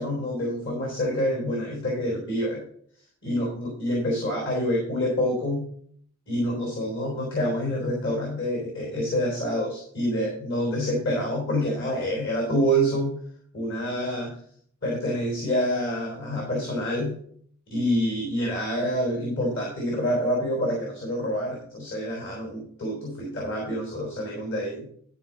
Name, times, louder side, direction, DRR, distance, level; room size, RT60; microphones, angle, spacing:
voice 1, 0.0-2.6 3.2-5.7 6.3-13.2 13.5-14.4 14.8-17.1 17.7-24.9, equal, 60° left, -1 dB, 3.7 m, -27 dB
13.0 x 5.5 x 5.0 m, 0.62 s
head